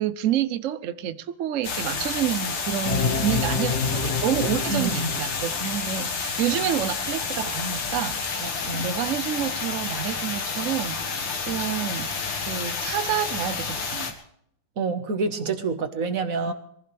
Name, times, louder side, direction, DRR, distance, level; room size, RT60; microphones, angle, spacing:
voice 1, 0.0-14.1 16.4-16.5, right 10 dB, 80° right, 12 dB, 0.7 m, -29 dB
sound 1, 1.6-14.1, left 5 dB, 70° left, 2.4 m, -30 dB
sound 2, 2.8-5.6, left 5 dB, 45° left, 1.0 m, -28 dB
voice 2, 4.7-5.1 8.4-9.0 14.8-16.5, right 4 dB, 45° right, 8 dB, 1.6 m, -27 dB
23.0 x 15.5 x 3.4 m, 0.70 s
omnidirectional pair, 2.2 m